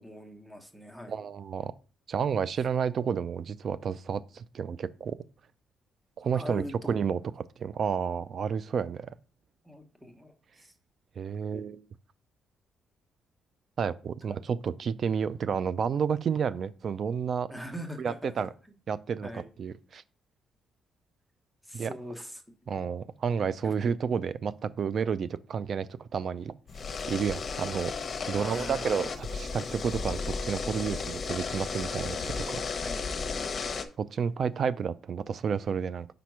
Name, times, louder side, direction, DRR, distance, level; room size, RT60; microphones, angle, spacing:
voice 1, 0.0-1.2 2.6-2.7 6.3-7.0 9.6-10.7 11.5-11.8 14.3-14.4 17.5-18.5 19.2-19.4 21.6-22.9 23.6-23.7 28.3-29.1 32.8-33.0, equal, 5° right, 1.1 m, -42 dB
voice 2, 1.1-1.7 2.1-5.2 6.2-7.2 7.6-9.1 11.2-11.8 13.8-17.5 18.0-18.5 18.9-20.0 21.7-21.9 22.7-26.5 27.1-27.9 28.3-32.7 34.0-36.1, right 6 dB, 55° right, 0.4 m, -31 dB
sound 1, 26.7-33.8, left 5 dB, 45° left, 0.8 m, -34 dB
5.1 x 4.4 x 4.7 m
cardioid pair, 90°, 0 cm